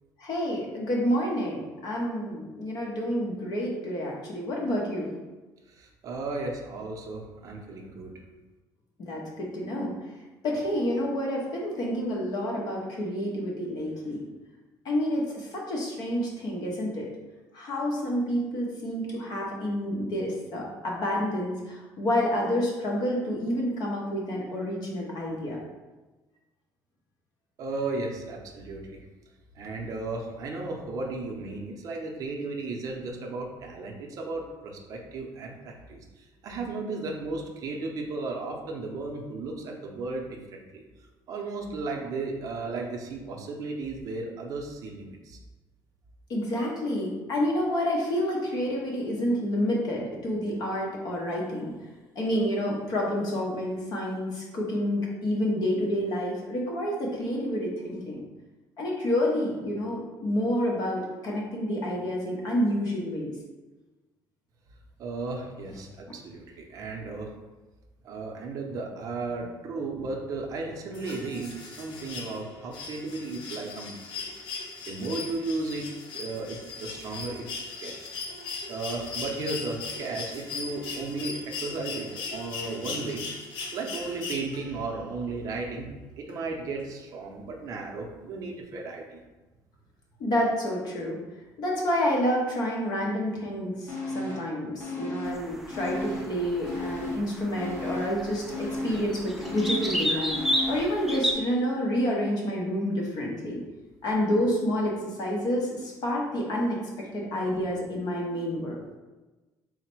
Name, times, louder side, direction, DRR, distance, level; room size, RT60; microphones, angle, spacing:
voice 1, 0.2-5.1 9.0-9.9 10.4-14.2 14.8-17.1 17.5-25.6 46.3-51.7 52.1-58.2 58.8-63.3 90.2-91.2 91.6-103.6 104.0-108.8, equal, 55° left, -2 dB, 0.9 m, -29 dB
voice 2, 5.7-8.2 27.6-29.0 29.6-40.8 41.3-45.4 65.0-67.3 68.0-74.3 74.9-77.5 77.8-78.1 78.7-83.2 83.7-89.2, right 3 dB, 45° right, 0 dB, 0.6 m, -35 dB
sound 1, 70.9-84.9 86.3-86.4, left 4 dB, 75° left, 0.7 m, -38 dB
sound 2, 93.9-94.5 94.8-96.4 96.6-101.0 101.4-101.5, left 1 dB, 25° left, 0.9 m, -35 dB
sound 3, 95.3-101.3, equal, ahead, 0.3 m, -32 dB
3.9 x 2.1 x 4.5 m, 1.2 s
cardioid pair, 150°, 8 cm